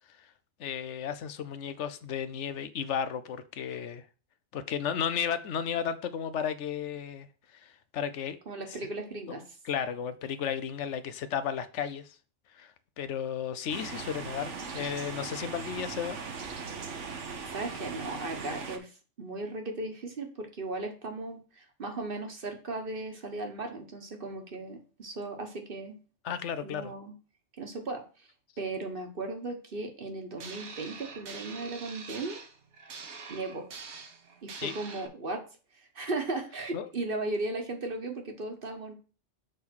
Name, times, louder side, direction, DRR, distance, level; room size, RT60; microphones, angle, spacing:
voice 1, 0.6-4.0 4.5-8.4 9.6-12.2 12.5-16.2 26.2-26.9 34.6-34.7 36.7-36.9, left 8 dB, 80° left, 1.0 m, -34 dB
voice 2, 8.5-9.4 17.5-26.0 26.6-27.1 27.6-28.0 28.6-32.4 33.3-33.7 34.4-35.4 35.9-38.9, right 2 dB, 50° right, 1.4 m, -36 dB
sound 1, 13.7-18.8, right 5 dB, 90° right, 1.4 m, -39 dB
sound 2, 30.4-35.1, right 5 dB, 70° right, 1.3 m, -45 dB
6.6 x 3.7 x 6.1 m
omnidirectional pair, 1.2 m